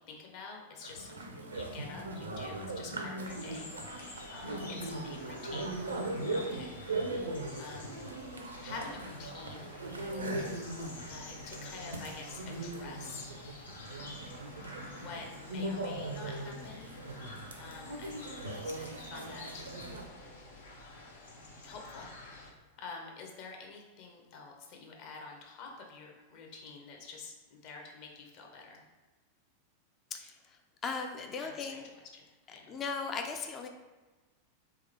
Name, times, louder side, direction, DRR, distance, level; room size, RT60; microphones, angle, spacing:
voice 1, 0.1-5.7 6.3-6.8 7.6-8.0 8.6-9.7 11.0-13.2 14.9-16.9 17.6-19.7 20.1-20.3 21.6-22.1 22.8-28.9 31.4-31.8 32.1-32.8, left 4 dB, 45° left, 0 dB, 0.8 m, -48 dB
sound 1, 0.8-20.0, right 2 dB, 75° right, 0.5 m, -39 dB
sound 2, 3.2-22.5, left 2 dB, 70° left, 0.9 m, -49 dB
voice 2, 30.1-30.6 30.8-31.9 32.7-33.7, left 5 dB, 25° left, 4 dB, 0.4 m, -37 dB
3.6 x 3.3 x 3.3 m, 1.2 s
figure-of-eight pair, 90°, 0 cm